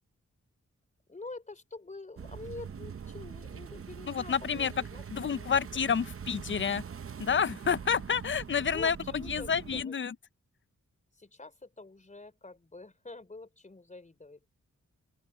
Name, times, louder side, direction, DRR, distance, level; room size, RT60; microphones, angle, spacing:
voice 1, 1.1-5.6 8.6-10.0 11.1-14.5, left 3 dB, 25° left, 3.9 m, -47 dB
sound 1, 2.2-9.8, right 7 dB, 45° right, 0.7 m, -43 dB
voice 2, 4.1-4.7 5.1-6.8 7.2-10.1, left 7 dB, 40° left, 0.5 m, -29 dB
open air
wide cardioid pair, 135°, 30 cm